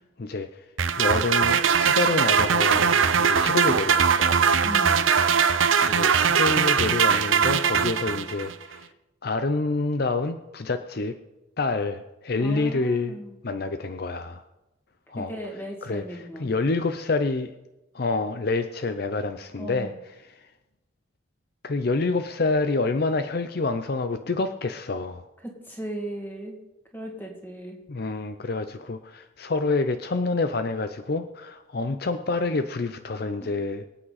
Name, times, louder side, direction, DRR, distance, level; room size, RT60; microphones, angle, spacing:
voice 1, 0.2-0.7 1.0-4.5 5.9-8.9 9.2-11.2 11.6-13.2 13.4-14.4 15.1-15.3 15.8-17.5 17.9-19.9 20.2-20.4 21.6-25.2 27.9-33.9, left 3 dB, 50° left, 9 dB, 0.6 m, -27 dB
sound 1, 0.8-8.5, right 6 dB, 80° right, 0.7 m, -21 dB
voice 2, 4.6-5.1 12.4-13.4 15.2-16.5 19.6-19.9 25.4-26.6 26.9-27.8 33.4-33.6, equal, 10° left, 1 dB, 2.3 m, -36 dB
23.0 x 8.7 x 4.1 m, 1.0 s
head